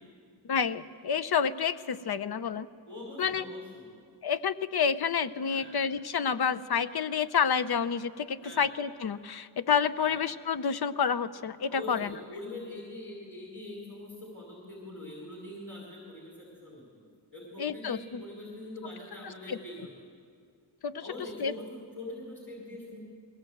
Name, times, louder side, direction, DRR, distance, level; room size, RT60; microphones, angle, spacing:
voice 1, 0.4-2.7 3.2-3.5 4.2-12.1 17.6-18.2 19.5-19.6 20.8-21.0 21.4-21.5, left 6 dB, 60° left, 14 dB, 0.7 m, -29 dB
voice 2, 2.9-3.9 5.4-5.7 8.4-8.6 10.0-10.2 11.7-16.8 17.3-19.9 21.0-23.0, left 2 dB, 30° left, -3 dB, 4.6 m, -43 dB
21.0 x 17.0 x 7.9 m, 2.1 s
wide cardioid pair, 85°, 42 cm